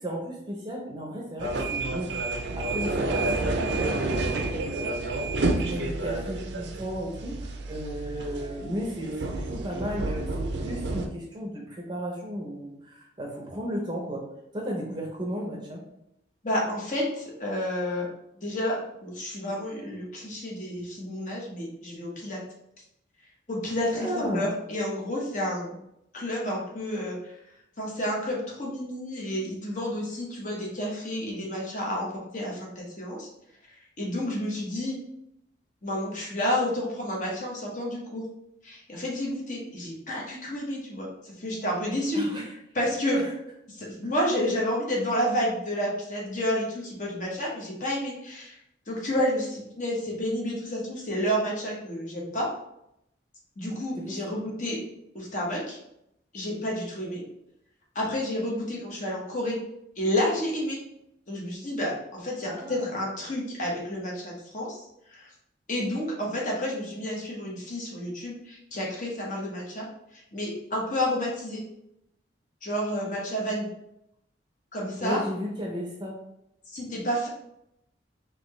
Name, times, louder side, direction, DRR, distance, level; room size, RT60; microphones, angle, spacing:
voice 1, 0.0-2.1 2.6-14.2 14.5-15.8 23.9-24.5 42.1-42.4 43.1-43.3 54.1-54.4 62.4-62.9 75.0-76.2, equal, 25° right, -1 dB, 0.6 m, -34 dB
sound 1, 1.4-11.1, right 2 dB, 70° right, 0.5 m, -30 dB
voice 2, 16.4-18.1 18.4-22.4 23.5-25.8 26.1-27.4 27.8-33.3 33.7-35.0 35.8-38.2 38.6-42.2 42.7-43.2 43.7-48.6 48.9-52.5 53.6-54.8 55.1-55.8 56.3-57.2 57.9-59.6 60.0-60.8 61.3-65.3 65.7-69.9 70.1-71.6 72.6-73.7 74.7-75.2 76.7-77.3, equal, 45° left, -3 dB, 1.1 m, -30 dB
4.2 x 2.8 x 3.1 m, 0.80 s
head